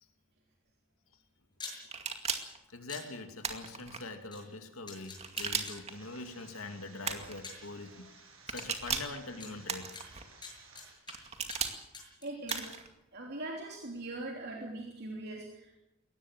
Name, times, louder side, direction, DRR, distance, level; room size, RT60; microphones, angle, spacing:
sound 1, 1.5-1.8 2.9-3.0 4.3-4.4 4.9-5.8 6.8-6.9 7.4-7.6 8.6-8.7 9.4-9.5 9.9-11.1 11.5-11.7 11.9-12.6, left 4 dB, 20° left, 7.4 m, -45 dB
sound 2, 1.9-2.6 3.4-4.0 5.2-5.9 7.0-7.4 8.5-9.2 9.7-10.2 11.1-11.8 12.5-12.9, right 6 dB, 30° right, 2.2 m, -36 dB
voice 1, 2.7-10.0, left 3 dB, 85° left, 5 dB, 2.6 m, -44 dB
sound 3, 5.9-10.9, right 4 dB, 75° right, 7.3 m, -57 dB
voice 2, 12.2-12.7 13.1-15.8, right 2 dB, 50° right, 0 dB, 3.2 m, -41 dB
22.0 x 18.5 x 7.7 m, 0.91 s
head